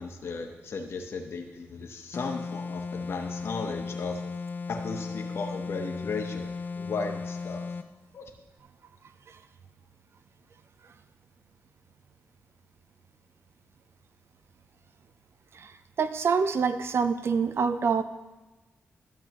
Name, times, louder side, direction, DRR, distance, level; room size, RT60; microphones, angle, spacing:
voice 1, 0.0-4.2 4.7-6.5 6.8-7.6 8.1-8.3, left 4 dB, 60° left, 3 dB, 0.9 m, -35 dB
sound 1, 2.1-7.9, left 4 dB, 40° left, 0.4 m, -36 dB
voice 2, 16.0-18.0, right 5 dB, 60° right, 11 dB, 0.5 m, -25 dB
12.5 x 7.1 x 3.0 m, 1.1 s
cardioid pair, 65°, 5 cm